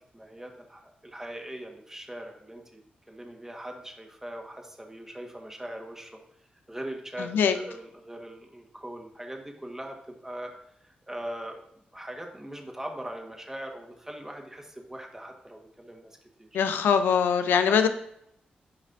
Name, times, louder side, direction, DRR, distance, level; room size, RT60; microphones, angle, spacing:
voice 1, 0.0-2.8 3.1-6.2 6.7-10.5 10.8-11.6 11.9-16.5 17.7-17.9, right 1 dB, 15° right, 3 dB, 1.6 m, -41 dB
voice 2, 16.5-17.9, left 7 dB, 85° left, 9 dB, 0.6 m, -22 dB
10.5 x 5.1 x 2.7 m, 0.73 s
supercardioid pair, 50°, 3 cm